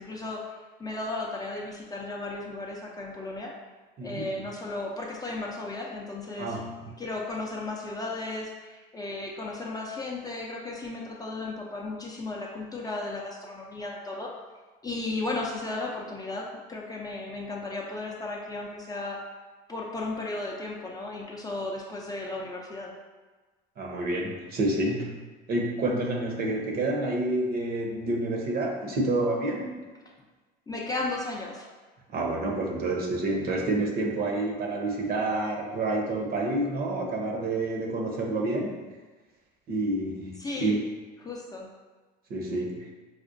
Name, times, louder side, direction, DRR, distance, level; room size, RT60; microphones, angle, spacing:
voice 1, 0.0-3.5 4.0-6.6 7.0-14.3 14.8-19.2 19.7-22.9 30.7-31.7 40.4-40.8 41.2-41.7, left 2 dB, 20° left, -2 dB, 0.5 m, -35 dB
voice 2, 4.0-4.3 6.4-6.9 23.8-25.2 25.5-29.9 32.1-38.9 39.7-40.8 42.3-42.9, right 2 dB, 45° right, 1 dB, 0.7 m, -28 dB
4.9 x 2.1 x 2.5 m, 1.3 s
supercardioid pair, 95°, 21 cm